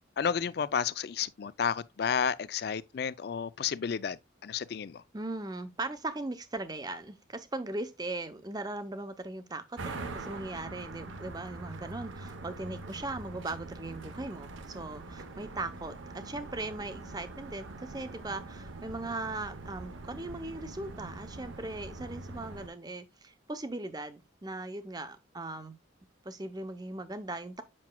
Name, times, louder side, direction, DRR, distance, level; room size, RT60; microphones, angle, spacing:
voice 1, 0.2-5.0, left 7 dB, 55° left, 0.3 m, -31 dB
voice 2, 5.1-25.8 26.2-27.6, right 2 dB, 20° right, 0.6 m, -39 dB
sound 1, 9.8-22.7, right 2 dB, 80° right, 0.8 m, -43 dB
7.5 x 5.9 x 2.2 m
head